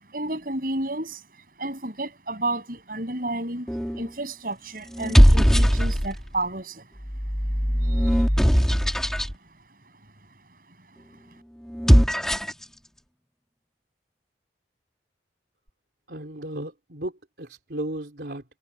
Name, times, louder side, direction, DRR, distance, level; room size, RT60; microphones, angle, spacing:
voice 1, 0.1-1.2 1.6-3.7 4.0-6.9 7.9-8.2, right 2 dB, 50° right, 6.4 m, -31 dB
sound 1, 3.7-4.1 4.9-6.3 7.0-9.3 11.7-12.6, equal, 5° left, 2.1 m, -19 dB
voice 2, 16.1-17.1 17.4-18.4, right 1 dB, 65° right, 3.5 m, -34 dB
head